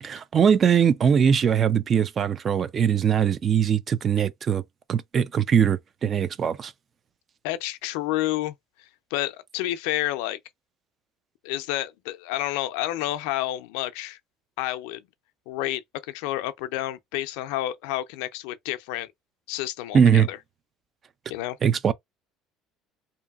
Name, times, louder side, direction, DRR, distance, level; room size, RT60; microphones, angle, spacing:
voice 1, 0.0-4.6 4.9-6.7 19.9-20.3 21.6-21.9, right 7 dB, 35° right, 0.3 m, -21 dB
voice 2, 7.4-10.4 11.4-14.2 14.6-15.0 15.5-19.1 19.5-20.4 21.3-21.6, left 15 dB, 85° left, 0.4 m, -30 dB
2.7 x 2.5 x 2.3 m
cardioid pair, 120°, 0 cm